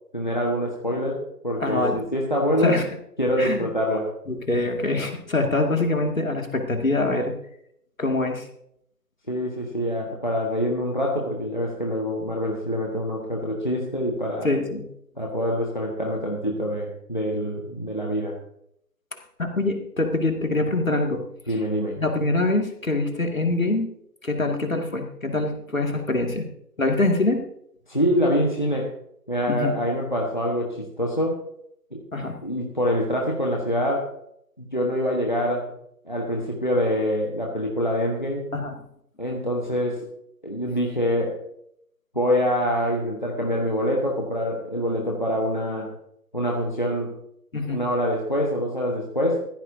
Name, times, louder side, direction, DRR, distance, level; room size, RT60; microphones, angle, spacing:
voice 1, 0.1-2.8 3.2-4.1 9.3-14.5 15.2-18.4 21.5-22.0 27.9-28.9 29.3-31.4 31.9-32.0 32.4-34.1 34.6-35.7 36.0-38.4 39.2-40.1 40.4-41.4 42.1-45.9 46.3-47.2 47.7-49.5, equal, 30° left, -2 dB, 1.3 m, -25 dB
voice 2, 1.6-2.0 2.6-2.8 3.4-3.7 4.3-7.3 8.0-8.5 14.4-14.8 19.4-21.2 22.0-23.9 24.2-26.5 26.8-27.4 29.5-29.7 32.1-32.4 38.5-38.8 47.5-47.8, left 2 dB, 55° left, 3 dB, 2.3 m, -24 dB
15.0 x 14.0 x 2.7 m, 0.72 s
figure-of-eight pair, 180°, 48 cm